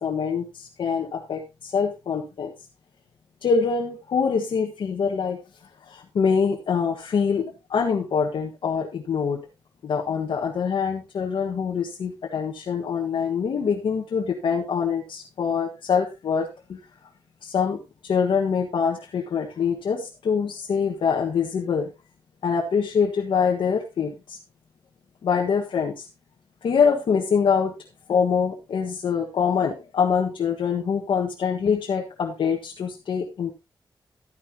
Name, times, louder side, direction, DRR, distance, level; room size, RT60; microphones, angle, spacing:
voice 1, 0.0-2.5 3.4-5.4 5.9-9.4 9.8-16.8 17.4-21.9 22.4-24.4 25.2-26.1 26.6-27.8 28.1-33.5, left 6 dB, 85° left, -1 dB, 1.6 m, -24 dB
13.0 x 9.9 x 2.9 m, 0.25 s
cardioid pair, 80°, 8 cm